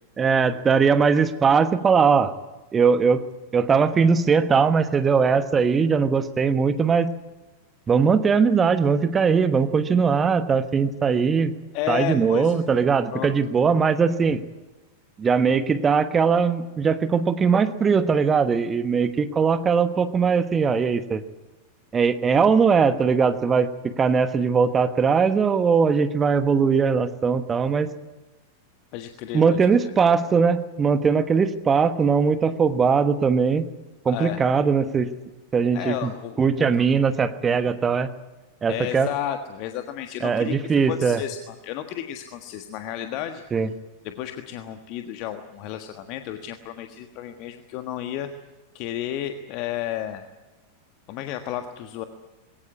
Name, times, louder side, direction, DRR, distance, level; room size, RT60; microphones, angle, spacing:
voice 1, 0.2-2.3 2.7-3.2 3.5-7.1 7.9-11.5 11.9-14.4 15.2-21.2 21.9-23.7 24.0-27.9 29.3-33.7 34.0-35.1 35.5-36.1 36.4-38.1 38.6-39.1 40.2-41.2 43.5-43.7, right 5 dB, 20° right, 11 dB, 1.2 m, -20 dB
voice 2, 11.7-12.6 13.1-13.3 28.9-29.9 34.1-34.4 35.7-36.8 38.7-43.4 44.0-48.3 48.7-50.2 51.1-52.0, left 11 dB, 40° left, 7 dB, 1.5 m, -32 dB
21.0 x 18.0 x 9.7 m, 1.2 s
figure-of-eight pair, 90°, 0 cm